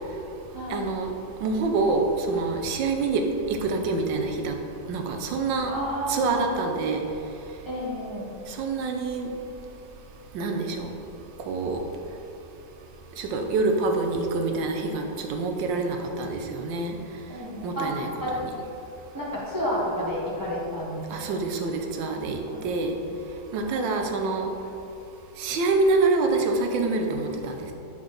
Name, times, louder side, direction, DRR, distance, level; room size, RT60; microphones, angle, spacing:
voice 1, 0.7-1.1 1.4-2.0 2.3-3.2 3.6-4.5 4.9-5.7 6.1-7.0 8.5-9.3 10.3-10.9 11.5-11.8 13.2-17.0 17.6-18.1 18.4-18.5 21.1-23.0 23.5-24.5 25.4-27.7, right 3 dB, 70° right, 4 dB, 1.3 m, -26 dB
voice 2, 5.7-6.4 7.7-8.3 17.3-17.9 18.2-18.3 19.1-21.3 22.5-22.7 23.7-23.9, equal, 25° right, -6 dB, 0.4 m, -31 dB
6.8 x 4.1 x 5.1 m, 2.9 s
omnidirectional pair, 2.2 m